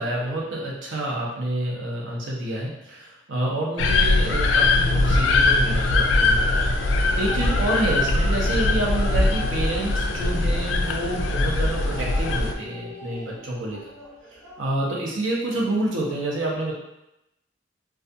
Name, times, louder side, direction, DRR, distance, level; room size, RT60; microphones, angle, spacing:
voice 1, 0.0-13.8 14.6-16.7, right 1 dB, 90° right, -3 dB, 0.6 m, -28 dB
sound 1, 3.8-12.5, left 2 dB, 80° left, 0.3 m, -21 dB
sound 2, 4.0-14.6, right 1 dB, 15° right, 0.7 m, -43 dB
2.3 x 2.3 x 2.6 m, 0.88 s
head